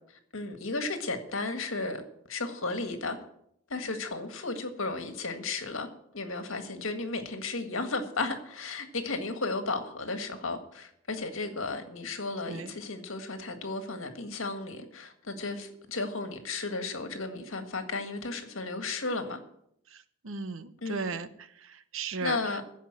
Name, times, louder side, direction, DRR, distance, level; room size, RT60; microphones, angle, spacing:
voice 1, 0.1-2.0 2.3-3.2 3.7-5.9 6.1-19.4 20.8-21.2 22.2-22.6, left 3 dB, 75° left, 7 dB, 1.8 m, -34 dB
voice 2, 19.9-21.3 21.6-22.4, right 4 dB, 75° right, 12 dB, 0.9 m, -36 dB
15.0 x 5.5 x 8.8 m, 0.73 s
head